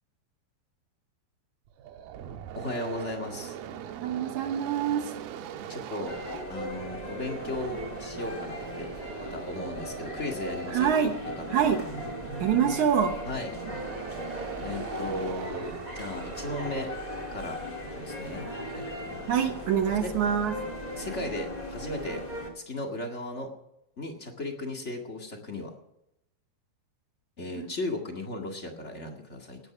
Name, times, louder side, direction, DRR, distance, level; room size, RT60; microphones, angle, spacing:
sound 1, 1.7-17.8, right 9 dB, 80° right, 2.8 m, -41 dB
voice 1, 2.5-3.6 5.7-6.2 6.5-8.9 9.3-11.7 13.2-13.5 14.6-16.9 17.3-17.6 17.9-18.5 18.7-19.3 20.0-20.1 21.0-22.2 22.5-23.5 24.0-25.7 27.4-29.6, left 2 dB, 30° left, 2 dB, 1.3 m, -36 dB
voice 2, 4.0-5.1 10.7-11.1 11.5-11.8 12.4-13.2 19.3-20.6 27.6-27.7, right 8 dB, 65° right, 6 dB, 2.1 m, -25 dB
sound 2, 6.1-22.5, left 1 dB, 15° left, 2.1 m, -38 dB
18.5 x 9.5 x 6.0 m, 0.85 s
omnidirectional pair, 4.5 m